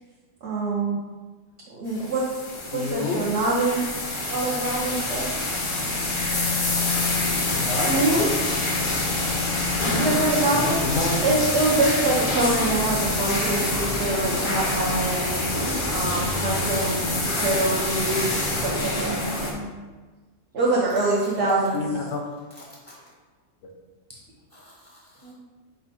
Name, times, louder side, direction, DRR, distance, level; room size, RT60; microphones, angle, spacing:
voice 1, 0.4-1.0 1.7-2.3 2.7-3.9 4.3-5.3 7.9-8.3 9.9-10.8 11.2-15.5 15.9-17.1 17.3-19.2 20.5-21.8, right 2 dB, 60° right, -6 dB, 1.0 m, -24 dB
sound 1, 1.9-19.5, left 2 dB, 40° left, 0.4 m, -26 dB
voice 2, 2.7-3.2 7.5-8.2 10.6-11.3 21.7-22.2, left 3 dB, 75° left, 1 dB, 1.0 m, -28 dB
voice 3, 14.5-14.8 22.7-23.0 24.5-25.3, right 1 dB, 30° right, -6 dB, 0.8 m, -43 dB
5.4 x 2.1 x 4.1 m, 1.3 s
omnidirectional pair, 1.4 m